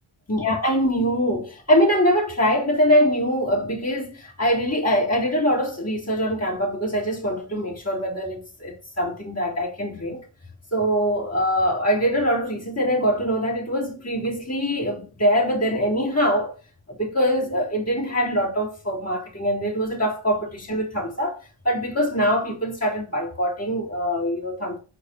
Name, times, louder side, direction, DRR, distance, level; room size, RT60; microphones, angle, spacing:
voice 1, 0.3-10.2 10.7-16.5 17.0-21.4 21.6-24.8, equal, 30° left, 3.9 m, -23 dB
6.6 x 4.5 x 6.2 m
cardioid pair, 40°, 47 cm